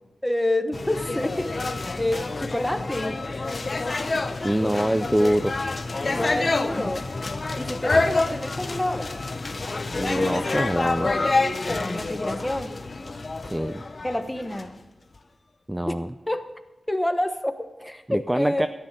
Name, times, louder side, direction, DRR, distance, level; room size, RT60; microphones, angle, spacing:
voice 1, 0.2-3.2 6.1-7.0 7.6-9.2 11.7-12.7 14.0-14.7 15.8-15.9 16.3-16.5 16.9-18.7, left 1 dB, 5° left, 7 dB, 1.1 m, -28 dB
sound 1, 0.7-14.7, left 3 dB, 40° left, 0.9 m, -27 dB
voice 2, 4.4-5.6 10.0-11.1 13.4-13.8 15.7-16.1 18.1-18.7, right 1 dB, 10° right, 10 dB, 0.4 m, -24 dB
14.0 x 10.0 x 6.6 m, 1.1 s
wide cardioid pair, 125°, 0 cm